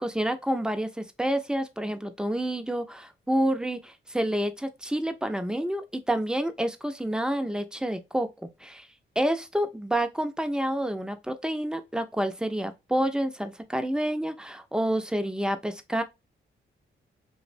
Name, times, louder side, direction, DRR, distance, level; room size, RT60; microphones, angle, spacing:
voice 1, 0.0-8.3 8.6-8.9 9.2-16.0, right 1 dB, 5° right, 0.4 m, -28 dB
2.6 x 2.0 x 2.4 m
cardioid pair, 75°, 21 cm